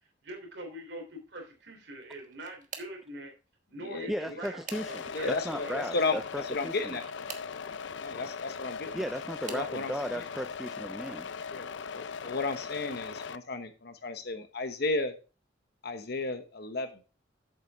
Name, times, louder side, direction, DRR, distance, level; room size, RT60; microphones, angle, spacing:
voice 1, 0.2-3.3 3.7-5.9, right 1 dB, 70° right, 3.1 m, -43 dB
sound 1, 2.0-3.1 4.0-5.3 6.9-7.6 8.7-9.7 10.5-10.8 11.2-11.4 12.7-12.8, right 7 dB, 45° right, 1.2 m, -47 dB
voice 2, 4.1-7.0 8.9-11.3, equal, ahead, 0.3 m, -36 dB
sound 2, 4.7-13.4, left 5 dB, 75° left, 0.5 m, -40 dB
voice 3, 5.1-7.0 8.0-9.1 9.5-10.2 11.5-15.1 15.8-16.9, left 3 dB, 60° left, 1.0 m, -34 dB
8.2 x 7.8 x 3.5 m
head